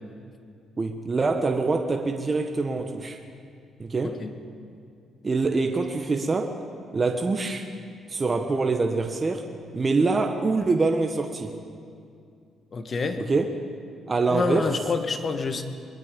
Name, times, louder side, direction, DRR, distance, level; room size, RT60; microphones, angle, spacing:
voice 1, 0.8-3.2 3.8-4.2 5.2-6.6 6.9-7.7 8.1-9.5 9.7-11.6 13.2-13.5 14.1-14.7, right 3 dB, 30° right, 4 dB, 1.4 m, -25 dB
voice 2, 12.7-13.2 14.3-15.6, left 4 dB, 45° left, 7 dB, 1.7 m, -27 dB
22.5 x 22.0 x 5.3 m, 2.4 s
cardioid pair, 90°, 0 cm